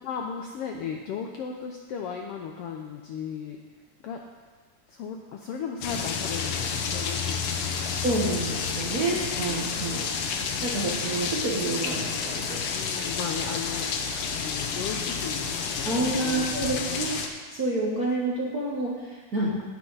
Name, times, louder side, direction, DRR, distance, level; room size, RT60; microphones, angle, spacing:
voice 1, 0.0-3.6 4.0-4.3 4.9-7.8 9.1-9.2 10.8-10.9 12.7-13.9 14.4-16.9 19.4-19.6, left 6 dB, 90° left, 3 dB, 1.3 m, -36 dB
sound 1, 5.8-17.3, left 6 dB, 70° left, 1.5 m, -30 dB
voice 2, 7.8-10.1 10.6-12.6 15.8-19.5, right 2 dB, 55° right, -5 dB, 1.0 m, -29 dB
17.5 x 5.9 x 3.9 m, 1.4 s
omnidirectional pair, 3.4 m